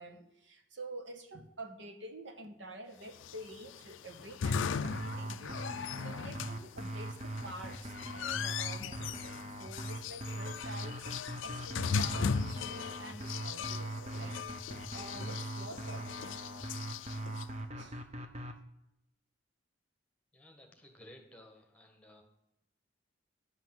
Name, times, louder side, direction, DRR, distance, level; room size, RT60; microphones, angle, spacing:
voice 1, 0.0-16.3 17.7-18.0, right 1 dB, 60° right, 6 dB, 1.1 m, -48 dB
sound 1, 3.1-17.4, left 6 dB, 70° left, 0.4 m, -38 dB
sound 2, 4.8-18.6, right 1 dB, 30° right, 0.9 m, -41 dB
voice 2, 20.3-22.2, left 1 dB, 5° left, 3 dB, 1.5 m, -56 dB
11.0 x 5.4 x 7.7 m, 0.86 s
head